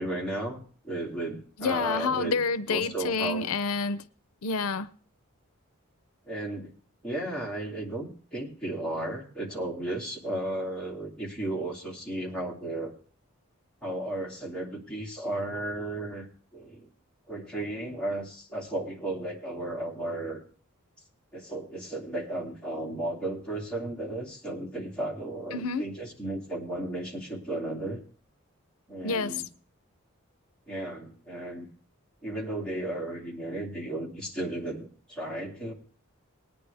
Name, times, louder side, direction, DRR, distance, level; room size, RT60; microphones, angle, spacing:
voice 1, 0.0-2.4 2.7-3.5 6.2-6.7 7.0-12.9 13.8-16.9 17.3-20.4 21.3-28.0 28.9-29.4 30.7-31.7 32.2-35.7, right 1 dB, 5° left, 2.6 m, -34 dB
voice 2, 1.6-4.0 4.4-4.9 25.5-25.9 29.0-29.4, left 4 dB, 85° left, 0.6 m, -28 dB
19.5 x 9.5 x 3.4 m
head